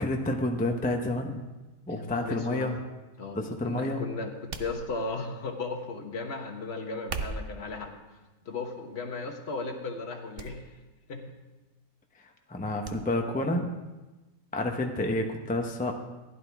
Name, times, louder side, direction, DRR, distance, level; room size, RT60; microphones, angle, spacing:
voice 1, 0.0-1.4 1.9-2.8 3.3-4.0 12.5-13.7 14.5-15.9, left 1 dB, 10° left, 3 dB, 0.6 m, -29 dB
voice 2, 1.9-2.8 3.2-8.0 8.4-10.6 11.1-11.3, left 3 dB, 45° left, 4 dB, 1.4 m, -36 dB
sound 1, 4.5-5.3 6.9-7.7 8.4-8.8 9.2-9.4 10.4-10.5 10.8-10.9 12.8-13.0 13.4-13.5, right 4 dB, 50° right, 0.8 m, -38 dB
15.5 x 11.0 x 3.5 m, 1.1 s
omnidirectional pair, 1.6 m